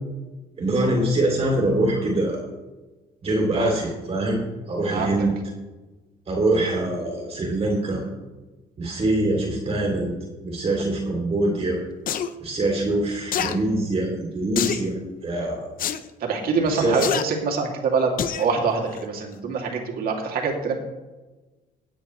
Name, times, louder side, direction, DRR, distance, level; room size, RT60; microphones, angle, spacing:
voice 1, 0.6-2.4 3.2-4.4 4.7-5.3 6.3-8.0 8.8-10.1 10.4-11.8 12.4-15.0 15.2-15.7 16.6-17.0, right 1 dB, 35° right, 0 dB, 3.0 m, -23 dB
sound 1, 12.1-12.3 13.3-13.5 14.6-14.9 15.8-16.0 17.0-17.2 18.2-18.5 18.9-19.0, left 9 dB, 55° left, 0.8 m, -26 dB
voice 2, 16.2-18.1 18.4-20.8, right 5 dB, 60° right, 1 dB, 2.7 m, -25 dB
17.0 x 9.2 x 3.3 m, 1.2 s
cardioid pair, 110°, 17 cm